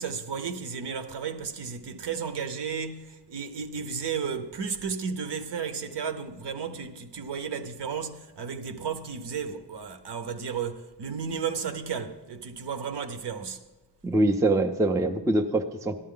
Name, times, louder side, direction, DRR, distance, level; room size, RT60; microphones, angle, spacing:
voice 1, 0.0-13.7, right 6 dB, 65° right, 0.9 m, -33 dB
voice 2, 14.0-16.0, right 2 dB, 5° right, 0.4 m, -24 dB
13.5 x 12.0 x 3.8 m
wide cardioid pair, 155°, 45 cm